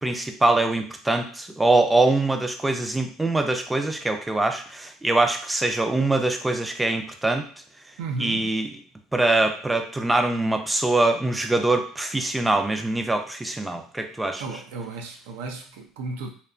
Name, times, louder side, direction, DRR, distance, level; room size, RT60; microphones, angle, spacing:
voice 1, 0.0-7.4 8.2-8.7 9.1-14.4, right 2 dB, 10° right, 0.3 m, -23 dB
voice 2, 8.0-8.5 14.4-16.3, right 3 dB, 90° right, 0.5 m, -34 dB
2.7 x 2.1 x 2.4 m
cardioid pair, 115°, 0 cm